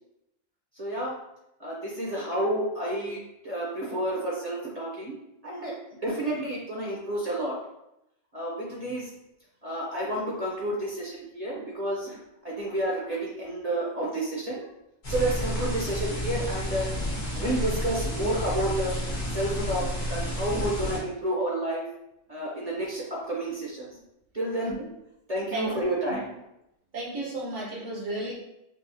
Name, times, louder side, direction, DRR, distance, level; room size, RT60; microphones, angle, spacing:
voice 1, 0.7-1.2 1.6-3.2 3.4-5.2 5.4-7.6 8.3-9.1 9.6-14.7 15.1-16.9 17.3-18.9 19.3-21.8 22.3-23.9 24.3-24.7 25.3-26.4, right 1 dB, 35° right, -4 dB, 0.8 m, -30 dB
sound 1, 15.0-21.0, equal, 80° left, 1.7 m, -31 dB
voice 2, 25.5-25.9 26.9-28.3, right 2 dB, 65° right, -4 dB, 1.4 m, -33 dB
5.3 x 2.3 x 2.7 m, 0.85 s
omnidirectional pair, 1.3 m